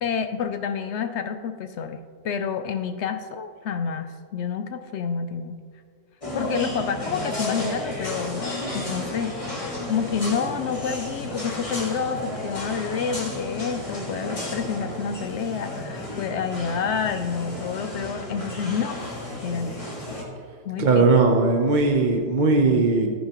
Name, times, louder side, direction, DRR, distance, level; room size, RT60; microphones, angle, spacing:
voice 1, 0.0-2.0 2.2-5.6 6.3-9.4 9.9-19.0 19.4-19.8 20.6-21.1, left 6 dB, 65° left, 8 dB, 0.7 m, -28 dB
sound 1, 6.2-20.2, left 1 dB, 25° left, 1.8 m, -33 dB
voice 2, 20.8-23.1, right 3 dB, 40° right, 2 dB, 0.8 m, -19 dB
14.5 x 9.7 x 3.0 m, 2.1 s
omnidirectional pair, 1.5 m